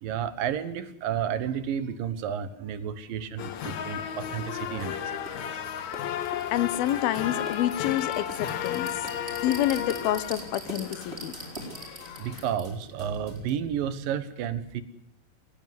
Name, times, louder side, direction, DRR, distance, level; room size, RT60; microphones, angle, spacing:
voice 1, 0.0-5.7 6.1-6.2 12.2-14.8, right 8 dB, 70° right, 13 dB, 2.8 m, -32 dB
sound 1, 3.4-12.6, left 10 dB, 60° left, 2.1 m, -34 dB
sound 2, 3.4-10.8, right 2 dB, 90° right, 5.7 m, -52 dB
sound 3, 5.3-5.4 5.9-13.5, right 1 dB, 15° right, 4.5 m, -42 dB
voice 2, 6.5-9.1 9.4-11.3, left 13 dB, 80° left, 16 dB, 2.8 m, -28 dB
18.0 x 17.5 x 9.4 m, 0.78 s
omnidirectional pair, 4.3 m